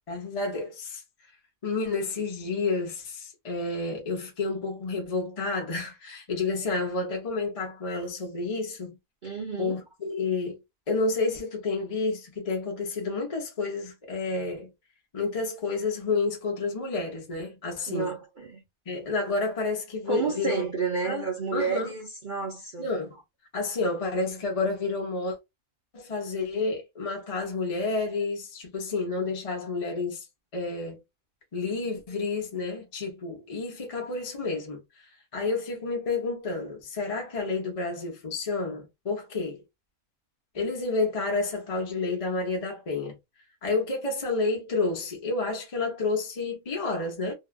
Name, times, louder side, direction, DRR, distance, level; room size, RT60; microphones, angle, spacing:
voice 1, 0.1-1.0 1.6-9.0 9.6-10.6 10.9-14.7 15.1-18.1 18.9-20.7 21.0-21.9 22.8-23.2 23.5-25.4 25.9-30.3 30.5-31.0 31.5-34.8 35.3-39.6 40.5-43.2 43.6-47.3, left 3 dB, 30° left, 0.7 m, -30 dB
voice 2, 9.2-9.8 17.9-18.6 20.1-22.9, right 5 dB, 40° right, 0.8 m, -30 dB
2.8 x 2.4 x 2.3 m
omnidirectional pair, 1.6 m